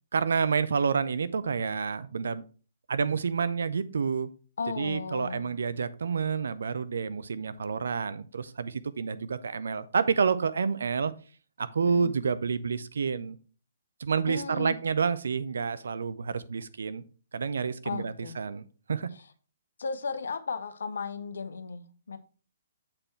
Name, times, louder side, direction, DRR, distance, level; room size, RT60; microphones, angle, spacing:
voice 1, 0.1-2.4 2.9-4.3 4.8-11.1 11.6-13.4 14.0-17.0 17.3-19.1, right 5 dB, 65° right, 0.6 m, -29 dB
voice 2, 4.6-5.5 11.8-12.1 14.3-14.8 17.8-18.4 19.1-19.2 19.8-22.2, left 5 dB, 65° left, 0.9 m, -35 dB
7.6 x 4.4 x 4.5 m
figure-of-eight pair, 125°, 0 cm